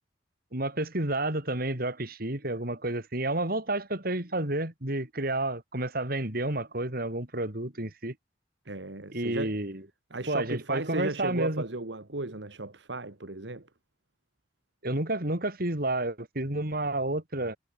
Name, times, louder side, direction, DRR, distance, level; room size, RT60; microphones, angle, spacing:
voice 1, 0.5-8.1 9.1-9.8 10.3-11.6 14.8-17.6, right 2 dB, 55° right, 4.3 m, -30 dB
voice 2, 8.7-9.6 10.1-13.7, right 2 dB, 80° right, 2.0 m, -35 dB
head